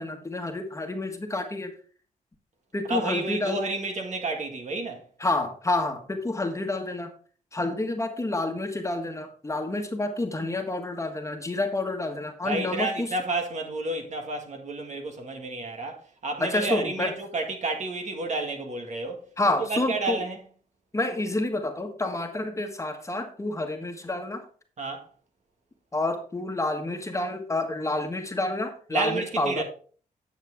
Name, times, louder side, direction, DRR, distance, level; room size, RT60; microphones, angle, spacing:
voice 1, 0.0-1.7 2.7-3.6 5.2-7.1 7.5-13.1 16.4-17.1 19.4-20.2 20.9-24.4 25.9-29.6, left 2 dB, 20° left, 1.5 m, -29 dB
voice 2, 2.9-5.1 12.4-19.3 19.7-20.4 24.8-25.1 28.9-29.6, right 2 dB, 60° right, 1.9 m, -30 dB
9.3 x 7.2 x 3.6 m
cardioid pair, 75°, 14 cm